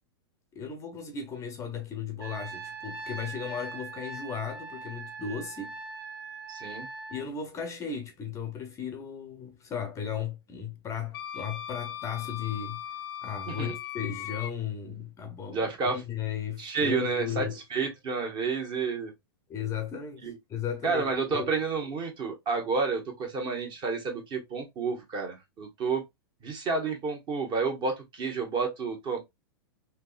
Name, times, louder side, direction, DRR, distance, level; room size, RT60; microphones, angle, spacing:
voice 1, 0.5-5.8 7.1-12.8 13.2-17.6 19.5-21.5, left 7 dB, 20° left, 0.6 m, -36 dB
Trumpet, 2.2-7.3, right 4 dB, 80° right, 2.2 m, -41 dB
voice 2, 6.5-6.9 13.5-13.7 15.5-16.0 16.6-19.1 20.2-20.4 20.8-26.0 26.4-29.2, right 4 dB, 35° right, 1.3 m, -30 dB
Wind instrument woodwind instrument, 11.1-14.5, left 11 dB, 65° left, 0.5 m, -38 dB
3.6 x 2.8 x 2.4 m
hypercardioid pair, 120°, 13 cm